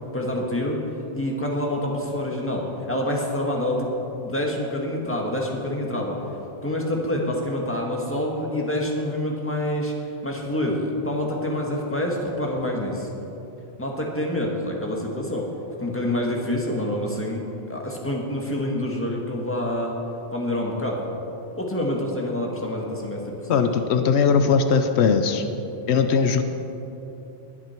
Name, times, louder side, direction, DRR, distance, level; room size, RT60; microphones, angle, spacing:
voice 1, 0.1-0.8 1.2-3.9 4.2-6.2 6.6-9.9 10.2-13.1 13.8-15.5 15.8-20.0 20.3-21.0 21.6-23.7, left 1 dB, 10° left, -1 dB, 1.7 m, -27 dB
voice 2, 23.5-25.4 25.9-26.4, left 5 dB, 80° left, 8 dB, 0.9 m, -19 dB
20.0 x 8.7 x 4.5 m, 2.9 s
omnidirectional pair, 1.1 m